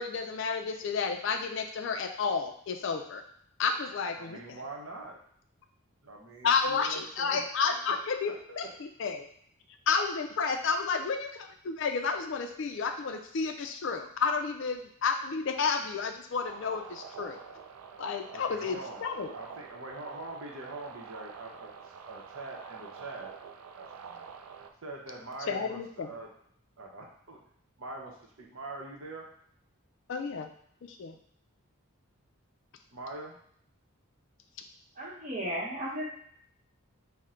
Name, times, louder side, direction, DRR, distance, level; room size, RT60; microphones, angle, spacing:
voice 1, 0.0-3.2 3.6-4.6 6.4-9.3 9.9-17.4 18.0-19.3 25.5-26.1 30.1-30.5 30.9-31.2, left 5 dB, 55° left, 6 dB, 0.4 m, -31 dB
voice 2, 4.2-5.2 6.0-7.4 8.3-8.7 18.3-19.1 19.3-23.3 23.8-24.3 24.8-26.3 26.8-27.4 27.8-29.3 32.9-33.4, right 2 dB, 65° right, -1 dB, 0.8 m, -43 dB
sound 1, 16.4-24.7, right 6 dB, 85° right, 0.4 m, -47 dB
voice 3, 35.0-36.1, equal, 35° right, -5 dB, 1.0 m, -34 dB
3.7 x 2.1 x 4.2 m, 0.65 s
head